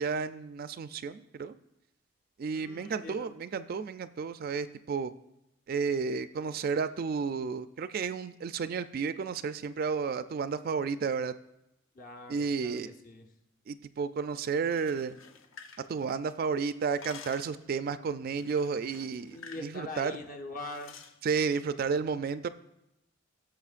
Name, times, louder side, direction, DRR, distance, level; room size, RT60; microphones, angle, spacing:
voice 1, 0.0-1.6 2.4-5.1 5.7-11.3 12.3-12.9 13.7-15.2 15.9-20.2 21.2-22.5, right 5 dB, 50° right, 12 dB, 0.3 m, -32 dB
voice 2, 2.5-3.3 11.9-13.3 19.3-21.0, left 2 dB, 45° left, 4 dB, 0.9 m, -43 dB
sound 1, 14.5-16.4 16.7-17.6 18.4-19.7 20.0-20.2 20.6-21.2, left 5 dB, 85° left, 0.8 m, -50 dB
17.0 x 6.7 x 2.5 m, 0.88 s
head